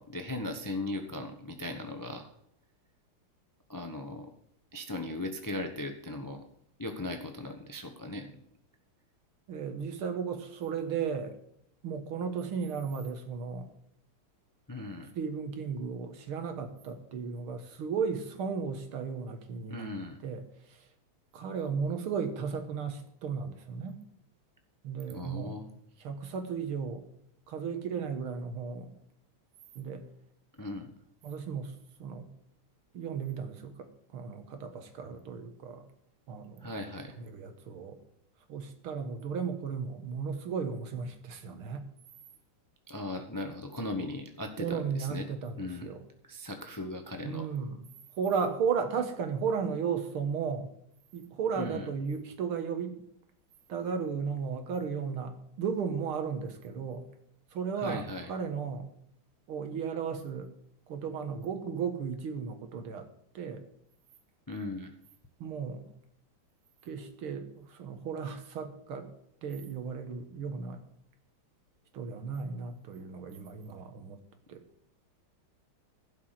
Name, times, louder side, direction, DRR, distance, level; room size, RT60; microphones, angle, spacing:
voice 1, 0.0-2.3 3.7-4.3 4.7-6.5 6.8-8.4 14.7-15.1 19.7-20.2 25.1-25.7 30.6-30.9 36.6-37.1 42.9-45.2 45.6-45.9 46.3-47.5 51.5-51.9 57.8-58.3 64.5-64.9, left 2 dB, 20° left, 5 dB, 0.5 m, -38 dB
voice 2, 9.5-11.4 11.8-13.7 15.2-19.9 20.2-20.8 21.3-24.0 24.8-25.6 26.0-27.0 27.5-28.9 29.8-30.0 31.2-31.7 32.0-32.3 32.9-35.8 36.3-36.7 37.2-38.0 38.5-41.9 44.6-46.0 47.2-47.9 48.2-50.7 51.1-53.0 53.7-57.1 57.5-58.9 59.5-60.5 60.9-63.1 63.3-63.6 65.4-65.9 66.8-69.1 69.4-70.8 71.9-74.2 74.5-74.6, right 6 dB, 75° right, 7 dB, 2.2 m, -35 dB
15.5 x 6.0 x 7.5 m, 0.72 s
omnidirectional pair, 2.4 m